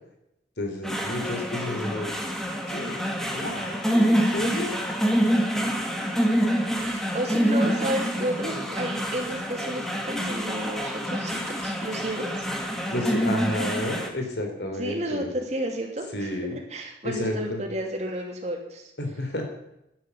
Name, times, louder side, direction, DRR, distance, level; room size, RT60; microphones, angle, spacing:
voice 1, 0.6-2.1 2.7-4.7 12.9-15.3 16.1-16.6 17.0-17.6 19.0-19.5, left 1 dB, 70° left, 4 dB, 3.5 m, -31 dB
sound 1, 0.8-14.1, equal, ahead, 1.8 m, -26 dB
voice 2, 5.8-6.2 6.8-12.5 14.8-18.9, right 1 dB, 40° right, 1 dB, 2.9 m, -32 dB
11.5 x 10.5 x 8.3 m, 0.86 s
head